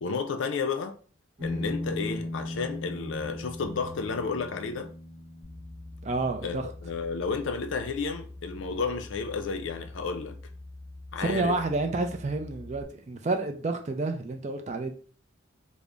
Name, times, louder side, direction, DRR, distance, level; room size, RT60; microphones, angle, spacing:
voice 1, 0.0-0.9 1.4-4.9 6.4-10.4 11.1-11.6, left 5 dB, 70° left, 0.4 m, -32 dB
sound 1, 1.4-10.4, left 1 dB, 15° right, 1.1 m, -39 dB
sound 2, 3.6-5.4, left 5 dB, 35° left, 1.2 m, -54 dB
sound 3, 5.4-12.8, left 2 dB, 60° right, 0.9 m, -45 dB
voice 2, 6.0-6.7 11.2-14.9, right 3 dB, 35° right, 0.4 m, -29 dB
3.4 x 2.0 x 3.8 m
head